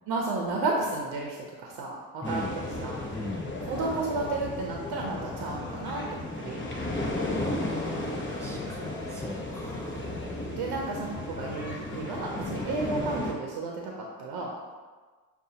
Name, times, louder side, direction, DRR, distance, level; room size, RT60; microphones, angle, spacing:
voice 1, 0.1-3.0 3.6-6.6 10.2-14.5, right 3 dB, 85° right, -1 dB, 0.6 m, -32 dB
sound 1, 2.2-13.3, left 2 dB, 30° left, 0.8 m, -34 dB
voice 2, 3.1-3.5 7.4-9.9, left 1 dB, 10° left, -2 dB, 0.4 m, -38 dB
6.7 x 2.3 x 2.7 m, 1.4 s
cardioid pair, 70°, 37 cm